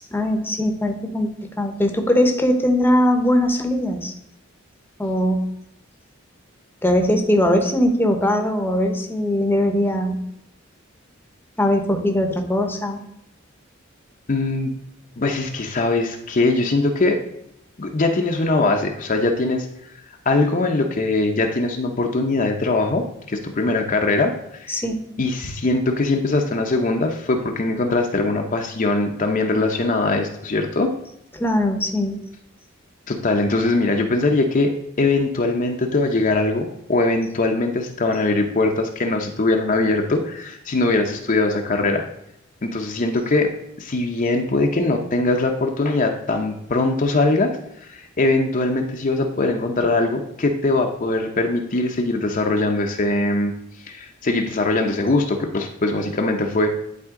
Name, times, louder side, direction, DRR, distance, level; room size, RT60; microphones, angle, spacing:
voice 1, 0.1-1.3 1.6-4.1 5.0-5.5 6.8-10.2 11.6-13.0 24.7-25.0 31.4-32.2, left 1 dB, 10° left, 4 dB, 0.8 m, -20 dB
voice 2, 14.3-14.7 15.2-17.2 17.8-19.7 20.3-24.8 25.2-30.9 33.1-42.0 42.6-43.5 43.8-53.5 53.9-56.7, left 2 dB, 40° left, 3 dB, 0.7 m, -21 dB
11.0 x 4.2 x 3.7 m, 0.78 s
head